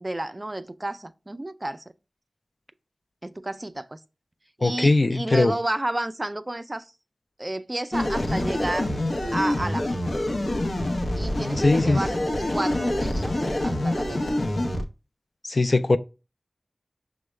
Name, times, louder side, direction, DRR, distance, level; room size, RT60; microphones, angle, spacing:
voice 1, 0.0-1.8 3.2-4.0 4.6-6.9 7.4-8.9 9.3-10.0 11.2-13.4 13.6-14.2, right 1 dB, 30° right, 0.3 m, -31 dB
voice 2, 4.6-5.5 11.6-12.0 15.4-16.0, left 2 dB, 55° left, 0.3 m, -20 dB
sound 1, 7.9-14.8, left 1 dB, 90° left, 0.6 m, -26 dB
6.0 x 2.1 x 3.2 m
wide cardioid pair, 55°, 0 cm